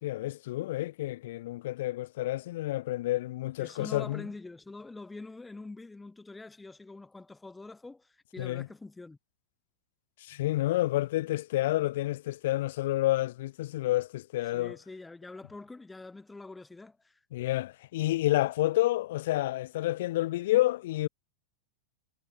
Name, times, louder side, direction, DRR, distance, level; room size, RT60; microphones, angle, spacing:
voice 1, 0.0-4.2 8.4-8.7 10.2-14.8 17.3-21.1, left 16 dB, 55° left, 3.3 m, -29 dB
voice 2, 3.6-9.2 14.5-17.2, left 3 dB, 10° left, 6.4 m, -45 dB
figure-of-eight pair, 90°, 0 cm